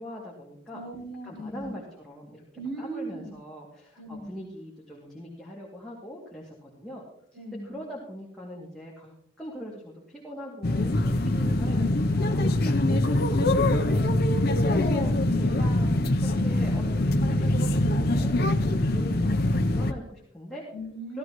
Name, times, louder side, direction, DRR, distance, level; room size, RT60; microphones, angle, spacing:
voice 1, 0.0-0.8 1.2-7.0 7.6-14.0 14.6-20.6 21.1-21.2, equal, 5° left, -6 dB, 2.4 m, -41 dB
voice 2, 0.7-1.7 2.5-3.3 4.0-4.4 7.3-7.8 11.1-11.8 20.7-21.2, right 2 dB, 65° right, -1 dB, 6.1 m, -38 dB
sound 1, 10.6-19.9, left 1 dB, 50° left, 0.6 m, -23 dB
15.5 x 13.5 x 3.1 m, 0.63 s
head